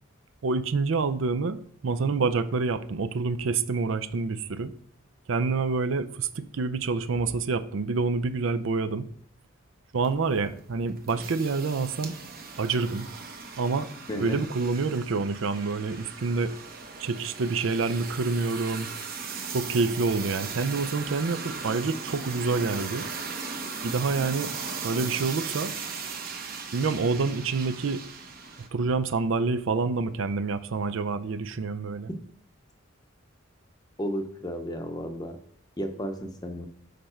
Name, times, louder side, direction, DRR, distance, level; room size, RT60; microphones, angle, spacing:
voice 1, 0.4-4.7 5.3-9.1 9.9-12.1 12.6-13.1 13.6-13.9 14.2-16.5 17.0-18.9 19.5-23.1 23.8-24.5 24.8-25.7 26.7-28.0 28.7-32.1, right 4 dB, 70° right, 13 dB, 0.5 m, -27 dB
sound 1, 10.0-28.7, right 5 dB, 45° right, 0.9 m, -38 dB
voice 2, 14.1-14.4 34.0-35.4 35.8-36.7, equal, 20° left, 6 dB, 0.7 m, -33 dB
6.7 x 5.3 x 4.4 m, 0.62 s
head